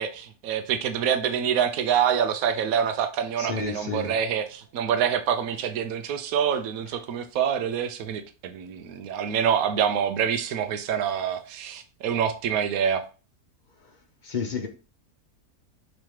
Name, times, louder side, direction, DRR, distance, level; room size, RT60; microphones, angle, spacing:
voice 1, 0.0-13.0, right 8 dB, 75° right, 1.1 m, -26 dB
voice 2, 3.4-4.1 13.8-14.0 14.2-14.7, left 5 dB, 45° left, 0.6 m, -31 dB
5.1 x 3.1 x 3.0 m
omnidirectional pair, 1.5 m